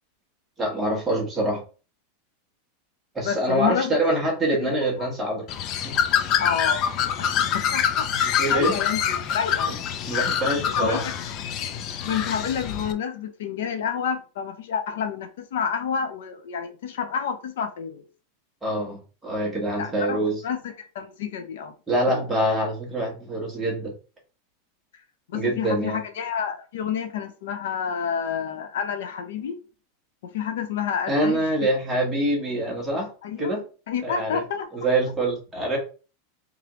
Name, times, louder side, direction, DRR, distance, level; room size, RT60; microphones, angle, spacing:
voice 1, 0.6-1.6 3.1-5.4 5.8-6.0 8.0-8.7 10.1-11.0 18.6-20.4 21.9-23.9 25.3-26.0 31.1-33.1 33.4-33.6 34.0-34.4 34.7-35.8, right 1 dB, 5° right, 1.2 m, -25 dB
voice 2, 3.2-4.0 4.6-4.7 5.0-5.1 6.4-6.9 7.2-9.7 10.1-10.2 10.8-11.1 12.0-18.0 19.8-20.2 20.4-21.7 25.3-29.6 30.3-31.4 33.2-33.5 33.9-34.7, left 7 dB, 70° left, 0.7 m, -29 dB
Bird, 5.5-12.9, left 8 dB, 30° left, 0.3 m, -25 dB
3.6 x 3.3 x 3.0 m
supercardioid pair, 180°, 0 cm